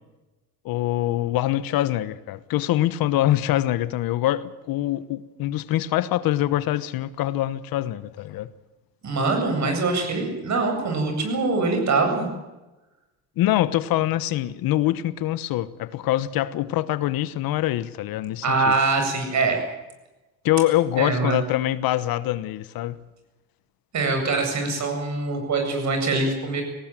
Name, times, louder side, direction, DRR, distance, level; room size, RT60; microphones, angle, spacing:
voice 1, 0.6-8.5 13.4-18.7 20.4-22.9, left 14 dB, 70° left, 1.2 m, -24 dB
voice 2, 9.0-12.3 18.4-19.6 21.0-21.4 23.9-26.6, right 3 dB, 50° right, 8.0 m, -23 dB
19.0 x 18.0 x 9.1 m
cardioid pair, 95°, 36 cm